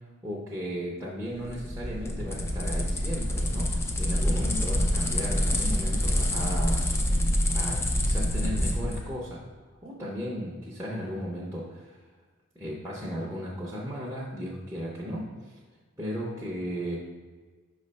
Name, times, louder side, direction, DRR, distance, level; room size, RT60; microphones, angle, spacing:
voice 1, 0.2-6.8 7.5-9.4 9.8-12.0 12.6-15.5 16.0-17.0, equal, 15° right, -6 dB, 0.7 m, -35 dB
sound 1, 1.4-9.0, left 1 dB, 10° left, 0.4 m, -26 dB
5.9 x 3.2 x 5.3 m, 1.4 s
head